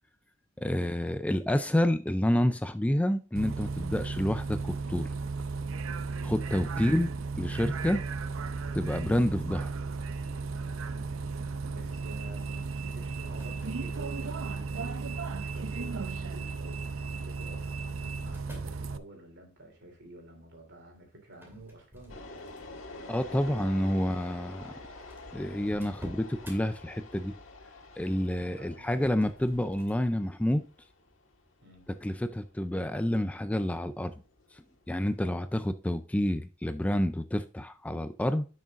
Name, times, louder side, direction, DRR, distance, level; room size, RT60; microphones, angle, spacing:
voice 1, 0.6-5.1 6.2-7.1 7.4-8.0 8.7-9.7 23.1-24.8 25.3-27.3 28.0-30.6 32.0-34.1 34.5-38.5, left 1 dB, 5° left, 0.4 m, -29 dB
Bus, 3.4-19.0, right 4 dB, 85° right, 0.6 m, -35 dB
voice 2, 11.7-23.9 28.5-28.9 31.6-31.9, right 1 dB, 60° right, 3.1 m, -51 dB
sound 1, 13.3-14.7 15.4-15.8 16.9-18.9 21.3-22.9 23.4-23.6 24.4-24.5 24.6-24.7 25.1-26.6 28.7-30.0, right 1 dB, 10° right, 2.5 m, -51 dB
sound 2, 22.1-35.2, left 2 dB, 70° left, 1.6 m, -48 dB
10.5 x 6.3 x 2.5 m
head